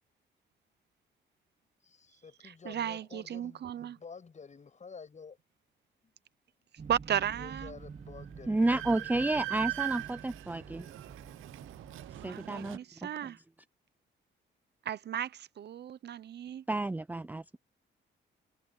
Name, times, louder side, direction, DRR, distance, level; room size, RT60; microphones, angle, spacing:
voice 1, 1.8-5.4 6.0-6.1 7.3-9.6, left 5 dB, 35° left, 7.1 m, -50 dB
voice 2, 2.4-4.0 6.9-7.8 12.2-13.4 14.8-16.6, right 10 dB, 60° right, 0.8 m, -35 dB
sound 1, 6.8-12.3, right 5 dB, 35° right, 2.9 m, -48 dB
Train, 7.8-7.9 8.2-12.8, right 16 dB, 85° right, 0.8 m, -40 dB
voice 3, 8.5-10.9 12.2-13.3 16.7-17.6, right 2 dB, 10° right, 0.5 m, -31 dB
cardioid pair, 90°, 20 cm